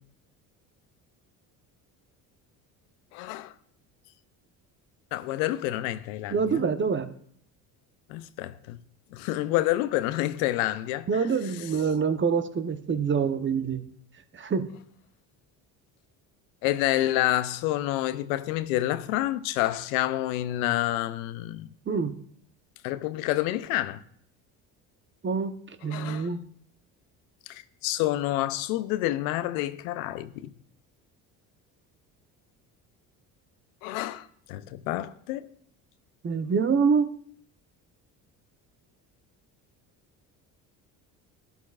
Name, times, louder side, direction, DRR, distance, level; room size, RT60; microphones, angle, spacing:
voice 1, 3.1-3.5 5.1-6.6 8.1-8.8 9.1-11.2 16.6-21.7 22.8-24.0 25.9-26.3 27.5-30.5 33.8-35.4, left 15 dB, 90° left, 0.6 m, -28 dB
voice 2, 6.3-7.1 11.1-13.9 14.3-14.7 21.9-22.1 25.2-25.5 25.8-26.4 36.2-37.0, right 5 dB, 30° right, 0.9 m, -25 dB
12.0 x 11.0 x 2.4 m
supercardioid pair, 80°, 41 cm